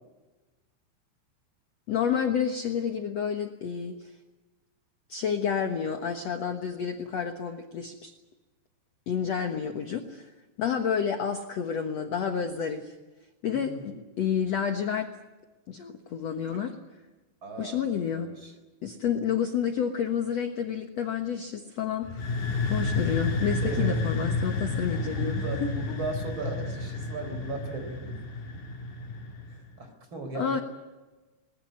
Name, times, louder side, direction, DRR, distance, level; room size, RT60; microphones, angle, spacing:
voice 1, 1.9-4.1 5.1-8.1 9.1-10.3 10.6-12.9 13.4-15.1 15.7-16.7 17.6-18.3 18.8-22.3 22.7-25.7 30.3-30.6, left 7 dB, 75° left, 5 dB, 1.5 m, -30 dB
voice 2, 13.5-13.9 16.5-16.6 17.4-18.5 23.6-24.0 24.9-28.2 29.5-30.6, right 3 dB, 30° right, 6 dB, 4.4 m, -37 dB
sound 1, 22.0-29.7, left 3 dB, 55° left, 3.6 m, -31 dB
21.5 x 20.0 x 9.5 m, 1.2 s
omnidirectional pair, 5.1 m